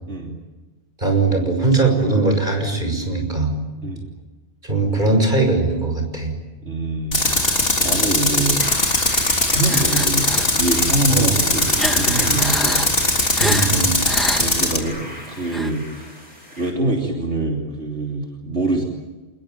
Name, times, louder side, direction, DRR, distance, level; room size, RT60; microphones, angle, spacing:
voice 1, 1.0-3.5 4.6-6.3 11.1-11.3 13.4-14.0, right 3 dB, 45° right, 4 dB, 6.2 m, -20 dB
voice 2, 6.6-7.3 7.8-8.6 9.4-12.8 14.4-16.1 16.6-18.8, right 2 dB, 80° right, 0 dB, 3.5 m, -24 dB
Tools, 7.1-14.8, left 2 dB, 55° left, 3.8 m, -20 dB
sound 1, 7.2-8.1 8.6-8.9 9.6-10.5 11.0-14.8 15.4-15.7, equal, ahead, 1.4 m, -29 dB
sound 2, 8.6-16.7, left 1 dB, 40° left, 7.9 m, -37 dB
27.5 x 21.0 x 9.2 m, 1.2 s
omnidirectional pair, 1.1 m